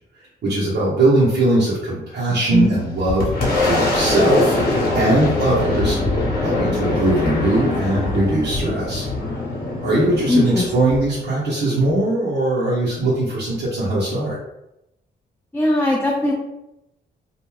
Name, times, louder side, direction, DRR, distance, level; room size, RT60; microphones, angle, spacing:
voice 1, 0.4-4.6 4.9-6.0 6.4-9.0 9.8-14.4, right 1 dB, 65° right, -8 dB, 1.0 m, -20 dB
Boom, 2.5-11.9, left 2 dB, 55° left, 1.0 m, -23 dB
voice 2, 10.3-10.6 15.5-16.3, left 2 dB, 10° left, -2 dB, 0.4 m, -18 dB
2.5 x 2.2 x 3.1 m, 0.87 s
cardioid pair, 85°, 18 cm